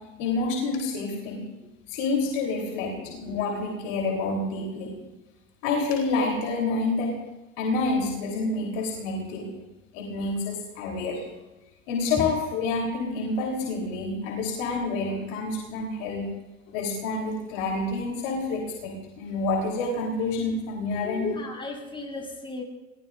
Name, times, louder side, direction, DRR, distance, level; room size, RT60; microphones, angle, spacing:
voice 1, 0.2-1.4 1.9-2.9 3.2-4.9 5.6-7.1 7.6-9.5 9.9-11.2 11.9-16.3 16.7-21.2, left 3 dB, 70° left, 0 dB, 3.6 m, -28 dB
voice 2, 21.0-22.6, left 3 dB, 15° left, -2 dB, 7.4 m, -35 dB
27.5 x 20.0 x 2.5 m, 1.1 s
hypercardioid pair, 70°, 39 cm